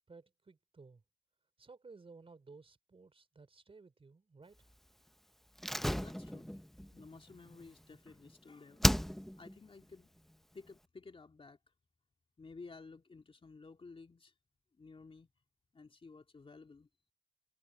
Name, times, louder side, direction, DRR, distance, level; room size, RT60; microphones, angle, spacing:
voice 1, 0.1-1.0 1.6-4.7, right 4 dB, 30° right, 3.8 m, -57 dB
Slam, 5.6-8.3 8.8-9.6 9.8-9.9, equal, ahead, 0.6 m, -34 dB
voice 2, 6.0-6.5 6.9-8.8 9.4-10.1 10.5-11.6 12.4-14.3 14.7-15.3 15.7-16.9, left 4 dB, 25° left, 2.8 m, -54 dB
cardioid pair, 90°, 20 cm